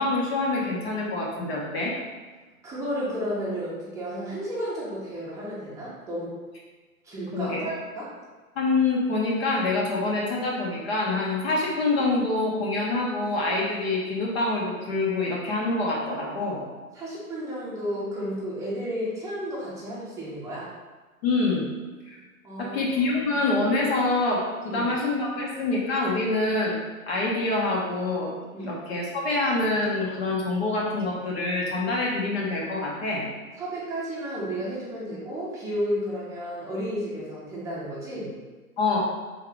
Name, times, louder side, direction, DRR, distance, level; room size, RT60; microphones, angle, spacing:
voice 1, 0.0-1.9 7.3-7.7 8.6-16.6 21.2-21.6 22.1-22.2 22.6-26.8 27.1-28.3 28.6-33.2 38.8-39.0, left 2 dB, 45° left, -3 dB, 1.0 m, -26 dB
voice 2, 2.6-6.4 7.0-8.1 16.9-20.7 22.4-23.0 24.7-24.9 28.5-28.8 33.6-38.3, equal, 5° right, -7 dB, 0.8 m, -32 dB
3.7 x 2.8 x 3.4 m, 1.3 s
figure-of-eight pair, 120°, 44 cm